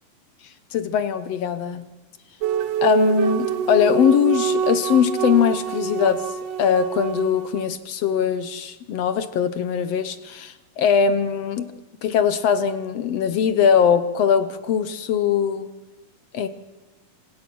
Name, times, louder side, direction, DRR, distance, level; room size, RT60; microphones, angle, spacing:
voice 1, 0.7-1.9 2.8-11.7 12.0-15.7 16.3-16.5, left 7 dB, 65° left, 12 dB, 1.7 m, -21 dB
sound 1, 2.4-7.7, right 7 dB, 60° right, 1.9 m, -25 dB
26.5 x 17.5 x 6.2 m, 1.1 s
omnidirectional pair, 3.7 m